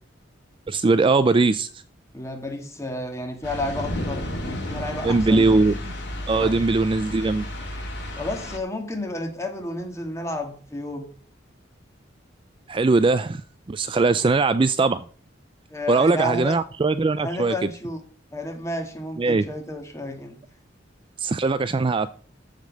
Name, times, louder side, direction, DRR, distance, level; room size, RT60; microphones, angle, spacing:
voice 1, 0.7-1.7 5.0-5.8 6.3-7.5 12.7-13.4 13.7-15.1 15.9-17.5 19.2-19.4 21.2-22.1, right 3 dB, 25° right, 13 dB, 0.4 m, -20 dB
voice 2, 2.1-5.5 6.3-6.6 8.2-11.1 15.7-16.5 17.2-18.0 18.3-20.4, left 1 dB, 15° left, 4 dB, 2.0 m, -31 dB
sound 1, 3.4-8.6, left 1 dB, 60° left, 3.6 m, -32 dB
14.0 x 5.2 x 6.5 m, 0.43 s
head